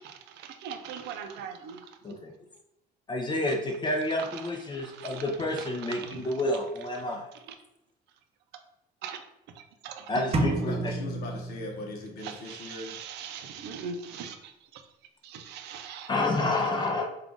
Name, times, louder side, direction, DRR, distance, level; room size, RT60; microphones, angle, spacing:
voice 1, 0.6-1.9 4.2-4.4 4.7-5.2 5.5-6.3 9.0-9.2 9.6-10.1 12.2-14.8 15.2-16.1, right 6 dB, 80° right, 7 dB, 0.5 m, -40 dB
voice 2, 3.1-7.3 10.1-10.9 16.1-17.0, left 2 dB, 25° left, 1 dB, 0.6 m, -29 dB
voice 3, 10.3-12.9, left 2 dB, 65° left, 0 dB, 0.7 m, -39 dB
sound 1, 10.3-12.2, right 2 dB, 35° right, 0.6 m, -30 dB
3.6 x 2.4 x 3.7 m, 0.85 s
cardioid pair, 110°, 17 cm